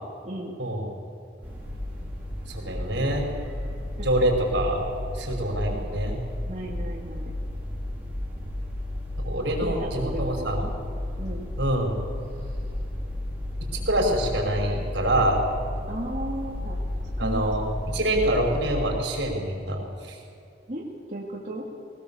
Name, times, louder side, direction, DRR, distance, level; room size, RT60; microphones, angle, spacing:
sound 1, 1.4-18.8, left 1 dB, 10° right, 4.4 m, -33 dB
voice 1, 2.5-3.2 4.0-4.8 5.1-6.2 9.2-10.6 11.6-11.9 13.9-15.4 17.2-17.6 17.9-20.2, right 1 dB, 70° right, 1 dB, 5.3 m, -25 dB
voice 2, 6.5-7.3 9.6-10.7 11.2-11.5 15.9-16.8 17.2-17.5 20.7-20.8 21.1-21.6, right 1 dB, 40° right, -5 dB, 2.5 m, -34 dB
20.5 x 19.5 x 7.1 m, 2.5 s
head